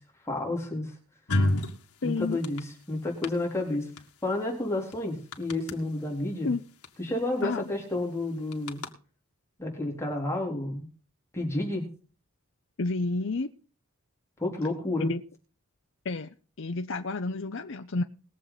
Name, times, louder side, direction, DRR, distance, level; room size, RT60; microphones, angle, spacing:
voice 1, 0.3-0.9 2.0-3.8 4.2-6.5 7.0-8.8 9.6-10.9 11.3-11.9 14.4-15.1, left 2 dB, 15° left, -1 dB, 3.9 m, -30 dB
sound 1, 1.3-1.8 2.3-2.6 3.2-3.3 4.0-4.1 4.3-4.4 4.9-5.0 5.3-5.7 6.8-6.9 7.2-7.4 8.5-8.9, left 1 dB, 85° left, 2.1 m, -26 dB
voice 2, 2.0-2.4 6.4-6.6 7.4-7.6 12.8-13.5 15.0-15.2 16.0-16.3 16.6-18.0, left 3 dB, 55° left, 7 dB, 0.7 m, -30 dB
21.0 x 7.7 x 4.1 m, 0.36 s
head